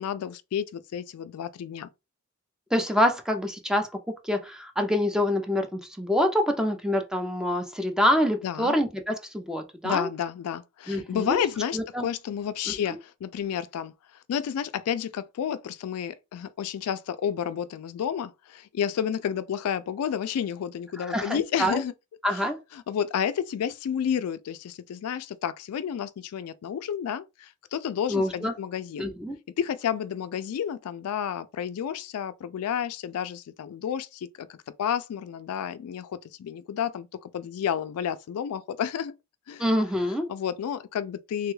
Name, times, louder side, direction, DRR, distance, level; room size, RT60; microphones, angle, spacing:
voice 1, 0.0-1.9 8.4-8.8 9.8-21.9 22.3-22.4 22.7-29.1 29.6-39.1 39.5-39.6 40.3-41.5, left 8 dB, 75° left, 0.3 m, -31 dB
voice 2, 2.7-3.9 4.2-10.1 10.9-11.4 11.7-12.1 12.7-12.8 21.0-21.8 22.2-22.6 28.1-28.5 29.0-29.4 39.6-40.3, left 1 dB, 5° right, 0.4 m, -26 dB
3.3 x 2.2 x 3.1 m
head